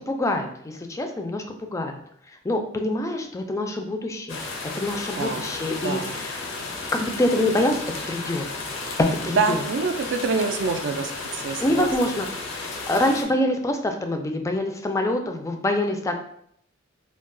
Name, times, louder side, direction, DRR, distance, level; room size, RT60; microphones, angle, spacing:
voice 1, 0.1-1.4 1.7-2.0 2.4-4.4 4.8-6.5 6.9-8.4 9.2-9.6 11.6-12.3 12.5-16.1, left 1 dB, 15° left, 4 dB, 0.3 m, -25 dB
sound 1, 4.3-13.2, left 3 dB, 90° left, 0.6 m, -33 dB
voice 2, 5.2-5.5 5.8-6.2 9.4-11.9, right 4 dB, 65° right, 7 dB, 0.3 m, -26 dB
2.3 x 2.2 x 3.6 m, 0.67 s
head